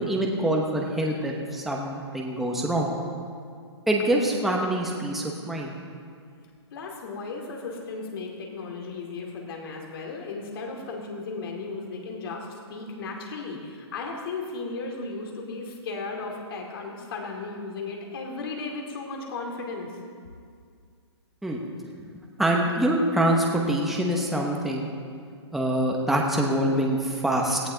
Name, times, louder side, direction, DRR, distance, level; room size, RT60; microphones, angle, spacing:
voice 1, 0.0-2.9 3.9-5.7 21.4-21.6 22.0-22.1 22.4-24.9 25.5-27.6, right 1 dB, ahead, -1 dB, 1.0 m, -25 dB
voice 2, 6.7-19.9, left 3 dB, 55° left, 0 dB, 2.5 m, -35 dB
17.5 x 14.5 x 3.9 m, 2.2 s
hypercardioid pair, 155°, 15 cm